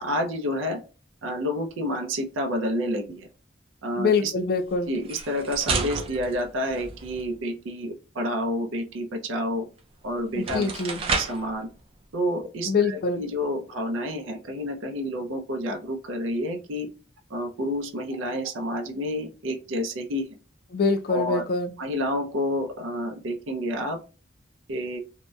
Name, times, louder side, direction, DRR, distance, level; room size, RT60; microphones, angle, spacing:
voice 1, 0.0-0.8 1.2-3.3 3.8-4.3 4.9-9.7 10.0-10.7 11.2-11.7 12.1-16.9 17.3-20.3 21.1-21.4 21.8-24.0 24.7-25.0, equal, 90° right, 0.5 m, -29 dB
voice 2, 4.0-4.9 10.4-11.0 12.7-13.2 20.7-21.7, left 4 dB, 50° left, 0.3 m, -24 dB
sound 1, 4.9-7.3 9.8-9.9 10.3-11.5, right 4 dB, 30° right, 0.3 m, -31 dB
2.7 x 2.1 x 2.2 m
head